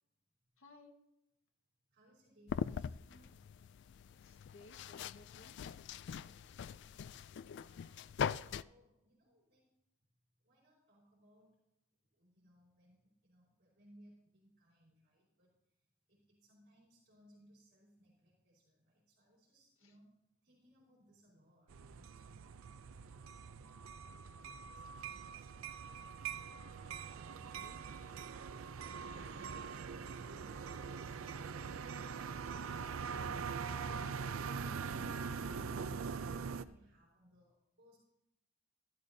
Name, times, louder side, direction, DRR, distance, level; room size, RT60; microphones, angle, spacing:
voice 1, 0.6-0.9 3.1-3.3 4.2-5.6 19.8-19.9 27.2-27.8, left 2 dB, 85° left, 3 dB, 1.5 m, -60 dB
voice 2, 1.9-3.3 5.9-6.9 7.6-9.7 10.4-11.6 12.1-15.5 16.1-20.1 20.4-25.7 26.9-38.0, equal, 50° right, -4 dB, 4.3 m, -67 dB
sound 1, 2.5-8.6, left 7 dB, 60° left, 0.3 m, -42 dB
sound 2, 21.7-36.6, right 6 dB, 85° right, 0.5 m, -43 dB
14.5 x 12.5 x 2.7 m, 0.87 s
head